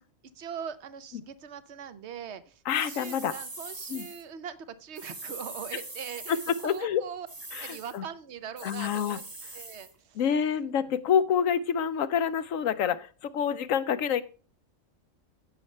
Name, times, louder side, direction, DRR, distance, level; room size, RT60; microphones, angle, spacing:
voice 1, 0.3-7.3 7.6-9.3 9.5-10.2, right 8 dB, 60° right, 12 dB, 1.1 m, -41 dB
voice 2, 2.7-3.3 3.9-4.1 6.3-7.0 7.5-8.0 8.6-9.2 10.2-14.2, left 8 dB, 85° left, 14 dB, 1.1 m, -27 dB
sound 1, 2.7-4.2 4.9-6.8 7.3-8.0 8.6-9.9, right 2 dB, 20° right, 0.8 m, -42 dB
16.0 x 6.6 x 3.2 m, 0.36 s
omnidirectional pair, 1.3 m